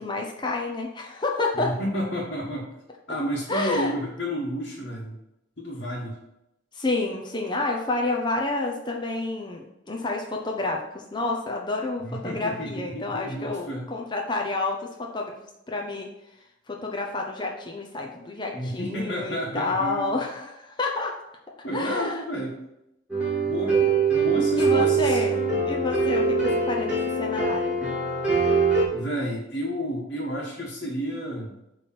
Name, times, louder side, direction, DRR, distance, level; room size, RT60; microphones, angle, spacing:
voice 1, 0.0-1.8 3.5-3.9 6.7-15.3 15.7-16.1 16.7-21.2 21.7-22.2 24.6-25.4 25.7-27.8, left 2 dB, 25° left, 0 dB, 0.7 m, -29 dB
voice 2, 1.5-2.7 3.1-5.2 5.6-6.2 12.0-13.8 18.5-20.2 21.6-22.6 23.4-25.2 28.9-31.6, equal, 60° left, -6 dB, 1.6 m, -31 dB
sound 1, 23.1-28.8, right 4 dB, 5° right, 1.9 m, -23 dB
8.2 x 3.3 x 6.1 m, 0.88 s
head